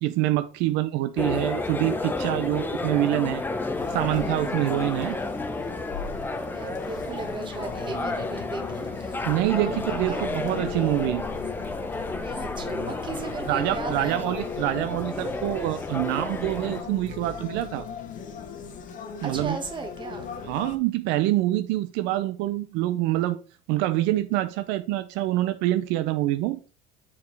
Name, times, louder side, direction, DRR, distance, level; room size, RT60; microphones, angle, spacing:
voice 1, 0.0-3.4 3.9-5.2 9.3-11.2 13.5-17.9 19.2-19.6 20.4-23.4 23.7-26.6, right 15 dB, 75° right, 0.5 m, -26 dB
sound 1, 1.2-16.8, left 3 dB, 10° left, 0.6 m, -31 dB
sound 2, 3.7-20.8, left 7 dB, 45° left, 1.0 m, -39 dB
voice 2, 6.5-10.3 12.2-14.3 19.2-20.3, right 4 dB, 25° right, 1.3 m, -36 dB
7.2 x 4.7 x 3.3 m
cardioid pair, 130°, 18 cm